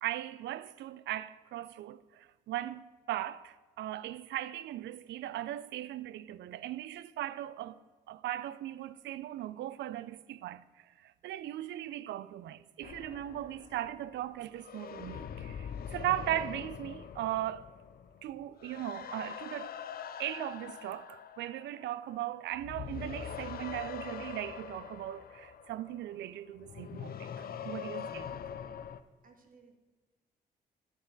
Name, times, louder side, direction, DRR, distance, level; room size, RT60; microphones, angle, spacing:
voice 1, 0.0-7.8 8.1-10.6 11.0-17.7 18.2-19.7 20.2-28.3, right 13 dB, 70° right, 0.4 m, -38 dB
sound 1, 12.8-22.2 22.5-29.0, left 7 dB, 50° left, 0.5 m, -43 dB
voice 2, 29.2-29.8, right 3 dB, 45° right, 1.5 m, -59 dB
11.0 x 6.9 x 3.9 m
hypercardioid pair, 50°, 19 cm